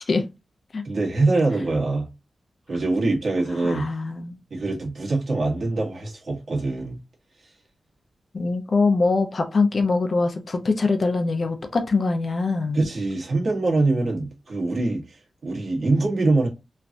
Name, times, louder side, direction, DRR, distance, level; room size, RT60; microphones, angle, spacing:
voice 1, 0.8-2.1 2.7-3.9 4.5-7.0 12.7-16.5, right 2 dB, 65° right, 1.3 m, -24 dB
voice 2, 3.6-4.4 8.3-12.8, left 3 dB, 55° left, 0.5 m, -23 dB
3.2 x 2.4 x 2.5 m
cardioid pair, 70°, 0 cm